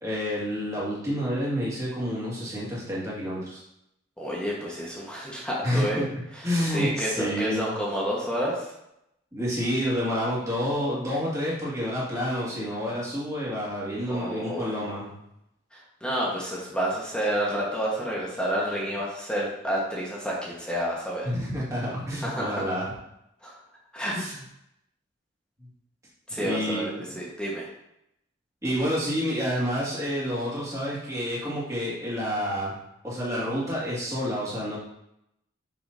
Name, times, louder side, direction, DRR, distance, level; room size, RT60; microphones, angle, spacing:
voice 1, 0.0-3.6 5.6-6.0 6.4-7.8 9.3-15.1 21.2-22.9 24.1-24.3 26.4-27.2 28.6-32.7 33.0-34.8, equal, 15° right, -7 dB, 2.0 m, -29 dB
voice 2, 4.2-6.0 6.3-8.7 14.1-14.8 15.7-21.3 22.2-22.6 23.4-23.6 23.9-24.2 26.3-27.7, equal, 5° left, -5 dB, 1.2 m, -30 dB
6.1 x 6.1 x 2.7 m, 0.82 s
head